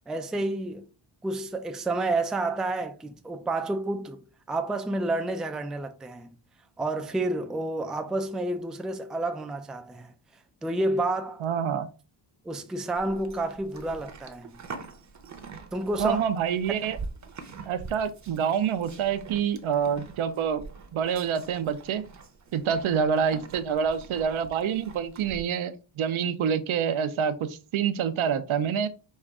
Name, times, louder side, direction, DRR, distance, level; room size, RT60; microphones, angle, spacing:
voice 1, 0.1-0.9 1.2-6.3 6.8-10.1 10.6-11.4 12.4-14.6 15.7-16.2 16.7-16.8, right 2 dB, ahead, 0.3 m, -30 dB
voice 2, 11.4-11.9 16.0-17.0 17.7-20.6 20.9-22.0 22.5-28.9, right 7 dB, 80° right, 0.7 m, -27 dB
Livestock farm animals working animals, 13.0-25.4, right 4 dB, 35° right, 0.7 m, -44 dB
5.4 x 2.5 x 3.5 m
wide cardioid pair, 120°, 48 cm